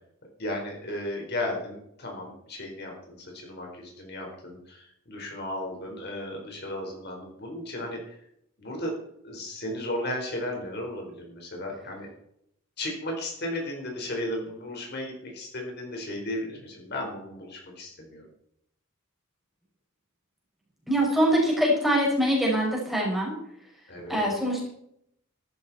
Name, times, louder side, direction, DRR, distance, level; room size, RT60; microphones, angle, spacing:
voice 1, 0.4-8.2 8.6-8.9 9.2-12.1 12.8-18.3 23.9-24.2, left 1 dB, 50° left, 0 dB, 4.5 m, -35 dB
voice 2, 20.9-23.3 24.1-24.7, equal, ahead, -3 dB, 5.4 m, -23 dB
14.0 x 12.5 x 4.3 m, 0.73 s
head